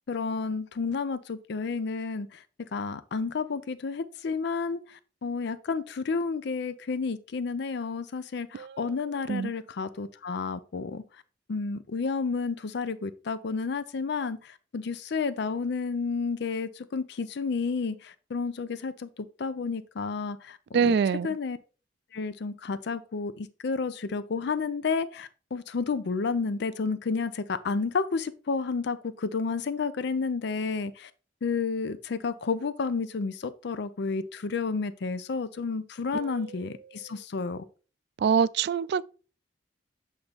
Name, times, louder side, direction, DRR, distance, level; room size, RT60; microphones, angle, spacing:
voice 1, 0.1-2.4 2.7-11.0 11.5-21.0 21.2-21.6 22.1-31.1 31.4-37.6, left 4 dB, 65° left, 0.5 m, -31 dB
voice 2, 20.7-21.3 36.1-36.4 38.2-39.0, right 6 dB, 65° right, 0.3 m, -25 dB
7.9 x 2.7 x 5.1 m
head